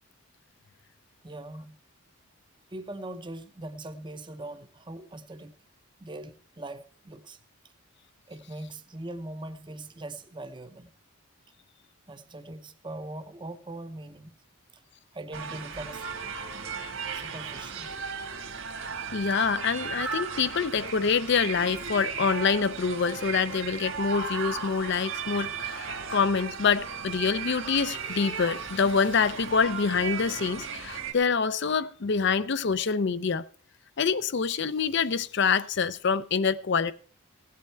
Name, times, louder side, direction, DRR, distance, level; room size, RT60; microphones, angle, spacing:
voice 1, 1.2-1.8 2.7-5.5 6.0-7.4 8.3-10.9 12.1-14.3 14.7-14.8 15.1-16.1 17.1-17.9, right 1 dB, 20° right, 0.7 m, -41 dB
sound 1, 15.3-31.1, right 5 dB, 60° right, 1.8 m, -36 dB
voice 2, 19.1-33.5 34.0-36.9, left 5 dB, 50° left, 0.5 m, -26 dB
17.0 x 8.5 x 4.4 m
head